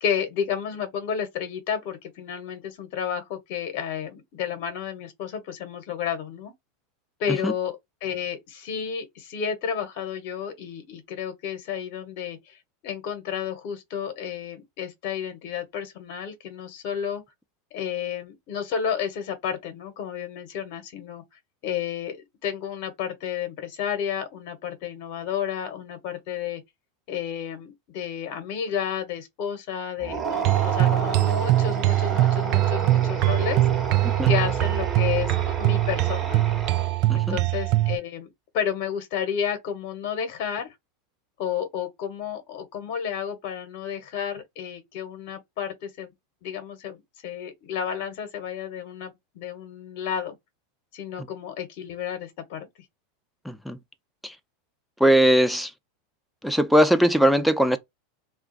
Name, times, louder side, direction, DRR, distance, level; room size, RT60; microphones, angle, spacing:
voice 1, 0.0-6.5 7.2-12.6 12.8-17.2 17.7-21.2 21.6-26.6 27.1-33.6 34.3-36.6 37.1-38.3 38.5-40.7 41.4-46.1 46.4-50.3 50.9-52.7, left 8 dB, 60° left, 1.0 m, -31 dB
sound 1, 30.0-37.2, right 5 dB, 25° right, 1.0 m, -31 dB
sound 2, 30.4-38.0, right 16 dB, 55° right, 0.4 m, -22 dB
voice 2, 53.5-53.8 54.2-54.3 55.0-55.7 56.4-57.8, equal, ahead, 0.6 m, -20 dB
2.4 x 2.3 x 3.9 m
hypercardioid pair, 90°, 0 cm